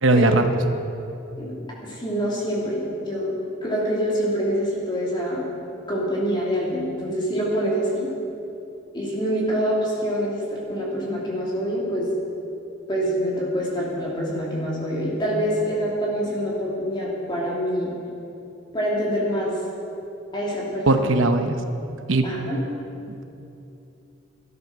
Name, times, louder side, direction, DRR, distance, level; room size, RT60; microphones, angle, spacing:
voice 1, 0.0-0.4 20.9-21.6 22.1-22.3, right 2 dB, 85° right, 6 dB, 0.9 m, -18 dB
voice 2, 1.8-3.3 3.6-5.5 5.9-8.1 8.9-12.1 12.9-17.9 18.7-19.6 20.3-21.1 22.2-22.6, equal, 25° left, -5 dB, 3.0 m, -25 dB
13.5 x 12.5 x 6.1 m, 2.7 s
head